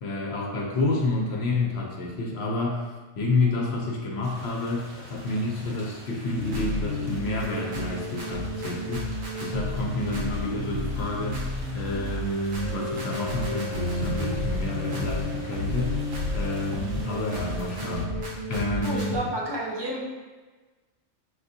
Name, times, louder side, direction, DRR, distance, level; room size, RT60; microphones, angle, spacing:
voice 1, 0.0-2.9 3.2-11.5 11.7-16.0 16.3-19.3, left 2 dB, 65° left, -1 dB, 0.9 m, -29 dB
sound 1, 4.2-18.0, right 1 dB, 55° right, 0.9 m, -42 dB
sound 2, 6.4-19.2, left 1 dB, 75° right, 1.2 m, -31 dB
Wind instrument woodwind instrument, 12.6-17.6, left 4 dB, 10° left, 1.1 m, -42 dB
voice 2, 18.8-20.0, right 1 dB, 30° right, -4 dB, 0.5 m, -30 dB
5.9 x 2.6 x 2.6 m, 1.3 s
omnidirectional pair, 1.3 m